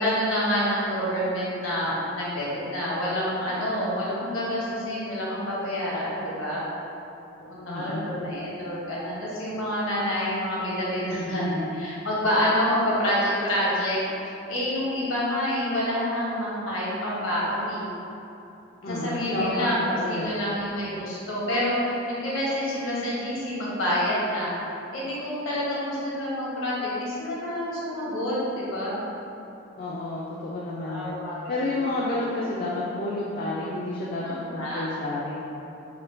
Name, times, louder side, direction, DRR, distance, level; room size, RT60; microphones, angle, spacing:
voice 1, 0.0-6.6 7.5-17.9 18.9-24.5 24.9-29.0 30.8-32.1 34.2-34.9, equal, 80° left, -7 dB, 0.9 m, -28 dB
voice 2, 7.7-8.1 18.8-20.3 29.8-31.2 31.5-35.4, left 2 dB, 45° left, -5 dB, 0.3 m, -30 dB
4.3 x 2.2 x 2.5 m, 2.9 s
head